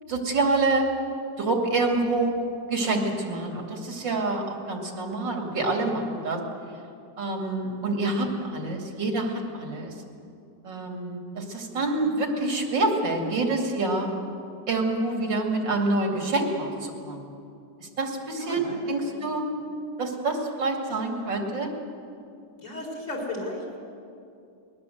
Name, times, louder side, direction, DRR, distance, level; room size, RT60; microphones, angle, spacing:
voice 1, 0.1-0.9 1.4-2.3 2.7-6.4 7.2-9.9 10.6-14.1 14.7-17.2 17.8-19.5 20.0-21.7, right 2 dB, 80° right, 2 dB, 3.2 m, -27 dB
voice 2, 18.3-19.2 22.6-23.8, left 1 dB, 40° left, -1 dB, 4.8 m, -35 dB
21.0 x 20.0 x 7.9 m, 2.5 s
omnidirectional pair, 2.0 m